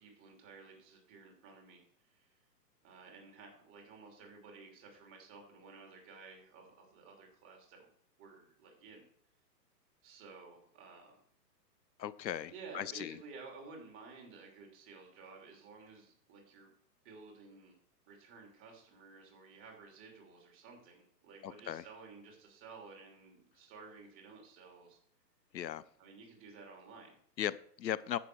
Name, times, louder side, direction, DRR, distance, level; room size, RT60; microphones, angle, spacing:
voice 1, 0.0-2.3 2.8-7.9 8.2-9.1 10.0-11.2 12.5-16.7 17.0-17.8 18.1-25.0 26.0-27.2, right 4 dB, 25° right, 1 dB, 3.0 m, -54 dB
voice 2, 12.0-13.2 21.4-21.8 25.5-25.8 27.4-28.2, left 10 dB, 90° left, 18 dB, 0.8 m, -38 dB
10.0 x 7.6 x 4.7 m, 0.63 s
hypercardioid pair, 140°, 50 cm